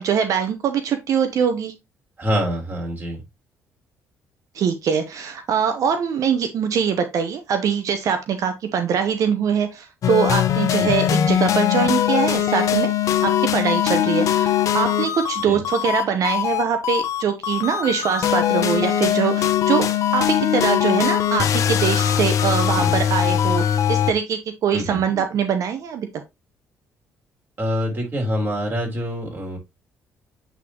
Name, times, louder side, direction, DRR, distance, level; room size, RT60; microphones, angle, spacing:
voice 1, 0.0-1.7 4.5-12.9 13.2-19.9 20.1-26.1, right 7 dB, 60° right, 0.8 m, -23 dB
voice 2, 2.2-3.2 10.8-11.0 15.4-15.6 22.7-23.0 24.7-25.0 27.6-29.6, equal, 35° right, 3.6 m, -26 dB
sound 1, 10.0-24.1, left 10 dB, 60° left, 0.9 m, -21 dB
8.2 x 3.8 x 3.0 m
cardioid pair, 85°, 6 cm